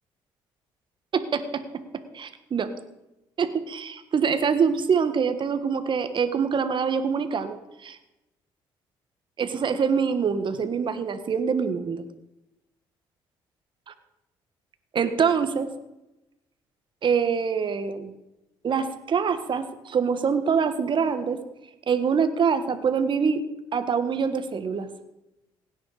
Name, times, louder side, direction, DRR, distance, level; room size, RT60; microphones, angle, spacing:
voice 1, 1.1-1.6 2.1-2.7 3.4-8.0 9.4-12.1 13.9-14.0 14.9-15.7 17.0-18.1 18.6-21.4 21.9-23.4 23.7-24.9, right 6 dB, 50° right, 10 dB, 1.6 m, -25 dB
17.0 x 9.7 x 5.0 m, 0.95 s
supercardioid pair, 60°, 11 cm